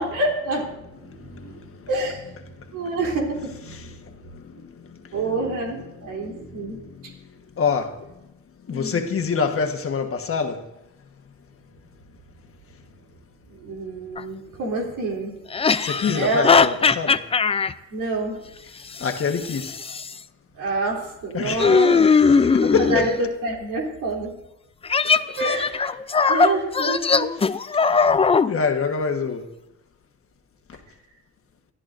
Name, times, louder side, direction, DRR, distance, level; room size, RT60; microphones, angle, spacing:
voice 1, 0.0-2.3 2.7-3.9 5.1-7.1 8.7-9.0 13.5-15.4 16.1-16.7 17.9-18.4 20.6-24.3 25.4-25.9 26.3-27.3, right 2 dB, 85° right, 3.4 m, -27 dB
voice 2, 1.0-1.9 2.6-2.9 3.7-5.2 6.1-8.2 8.7-10.7 15.8-17.2 19.0-19.8 21.3-23.1 28.5-29.5 30.7-30.8, left 5 dB, 45° left, 1.4 m, -27 dB
sound 1, 14.2-14.3 15.5-17.7 19.0-20.1 21.6-23.1 24.8-28.5, left 5 dB, 20° left, 0.4 m, -19 dB
22.5 x 13.5 x 2.6 m
cardioid pair, 90°, 30 cm